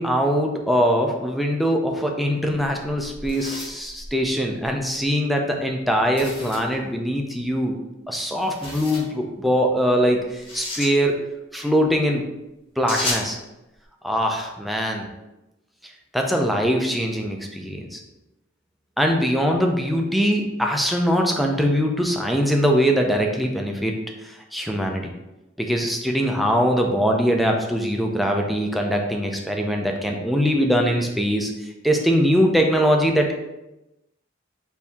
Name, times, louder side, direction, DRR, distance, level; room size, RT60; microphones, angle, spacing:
voice 1, 0.0-7.8 8.1-12.3 12.8-13.4 14.0-15.1 16.1-18.0 19.0-23.9 24.5-25.1 25.6-31.5 31.8-33.4, equal, ahead, 1 dB, 0.4 m, -22 dB
sound 1, 3.0-4.8 6.2-6.8 8.4-9.1 10.3-10.9 12.9-13.3, left 2 dB, 30° left, 1.1 m, -32 dB
4.5 x 2.7 x 3.5 m, 0.96 s
head